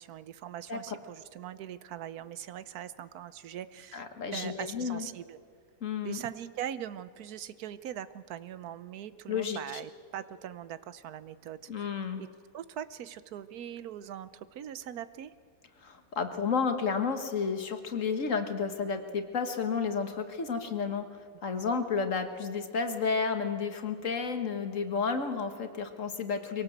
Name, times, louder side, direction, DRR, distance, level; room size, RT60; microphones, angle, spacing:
voice 1, 0.0-5.4 6.0-11.9 12.2-12.3 12.5-15.3 21.6-21.7, right 10 dB, 90° right, 14 dB, 1.3 m, -41 dB
voice 2, 3.9-5.1 5.8-6.2 9.3-9.8 11.7-12.2 15.8-21.1 21.4-26.6, left 5 dB, 60° left, 7 dB, 1.8 m, -31 dB
23.5 x 17.5 x 7.9 m, 2.1 s
omnidirectional pair, 1.6 m